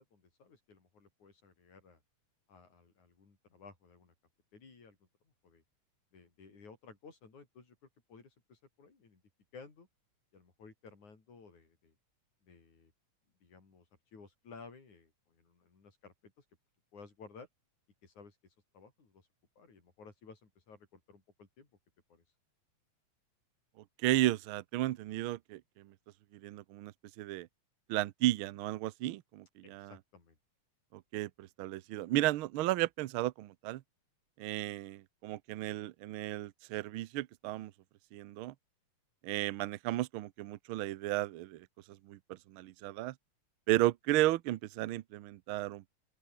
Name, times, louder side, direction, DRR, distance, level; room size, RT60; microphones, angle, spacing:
voice 1, 0.0-2.0 2.5-4.1 4.5-5.0 5.4-5.6 6.1-7.8 8.1-9.2 9.5-9.9 10.3-11.9 12.4-12.9 13.4-13.9 14.1-16.4 16.9-17.5 18.0-19.3 19.6-21.7 22.1-22.2 29.6-30.4, left 4 dB, 80° left, 6.5 m, -56 dB
voice 2, 24.0-25.9 26.3-27.5 27.9-29.9 30.9-33.8 34.4-37.7 38.1-38.5 39.2-41.7 42.0-43.1 43.7-45.8, right 15 dB, 85° right, 1.1 m, -34 dB
open air
omnidirectional pair, 3.3 m